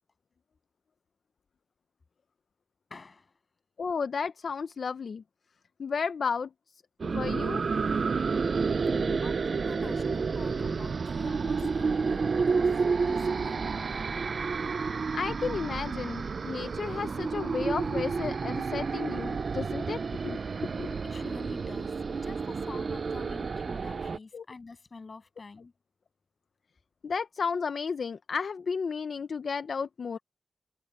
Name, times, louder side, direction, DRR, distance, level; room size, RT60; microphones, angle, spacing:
voice 1, 2.9-3.4 8.8-14.0 17.0-17.2 21.0-25.7, left 4 dB, 30° left, 7.9 m, -48 dB
voice 2, 3.8-5.2 5.8-6.5 7.0-7.7 8.9-9.2 9.8-9.9 15.1-20.4 20.8-20.9 24.3-24.4 27.0-30.2, left 5 dB, 50° left, 0.5 m, -33 dB
sound 1, 7.0-24.2, right 5 dB, 45° right, 0.4 m, -30 dB
wide cardioid pair, 180°, 0 cm